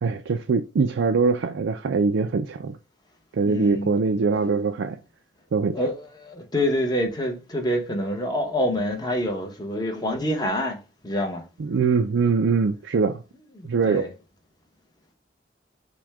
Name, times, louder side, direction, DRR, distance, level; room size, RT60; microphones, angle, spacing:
voice 1, 0.0-2.8 3.3-5.0 5.5-5.8 11.6-13.2 13.6-14.1, right 4 dB, 85° right, 0.4 m, -23 dB
voice 2, 3.4-3.9 5.7-5.9 6.2-11.4 13.6-14.1, equal, 20° left, 1.0 m, -26 dB
6.0 x 2.2 x 3.5 m
head